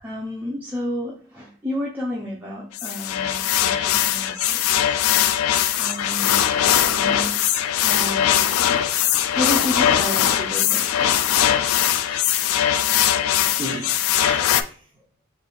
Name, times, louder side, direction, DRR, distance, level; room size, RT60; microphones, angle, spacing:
voice 1, 0.0-4.9 5.8-7.5 7.8-8.5 9.3-11.1, left 1 dB, 10° right, -4 dB, 0.5 m, -31 dB
sound 1, 2.7-14.6, left 10 dB, 80° left, 0.3 m, -20 dB
voice 2, 11.8-13.2 13.6-13.9 14.2-14.7, right 1 dB, 25° right, -3 dB, 1.9 m, -36 dB
4.1 x 2.5 x 3.0 m, 0.42 s
head